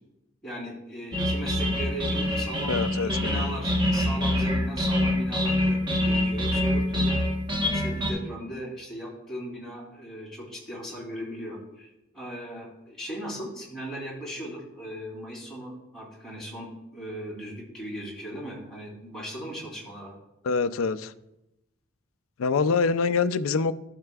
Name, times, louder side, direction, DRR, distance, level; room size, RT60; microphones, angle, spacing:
voice 1, 0.4-7.2 7.7-20.1, equal, ahead, 2.9 m, -38 dB
sound 1, 1.1-8.1, left 1 dB, 25° right, 1.1 m, -25 dB
voice 2, 2.7-3.5 20.4-21.1 22.4-23.7, left 5 dB, 90° left, 0.4 m, -25 dB
12.0 x 6.6 x 2.3 m
head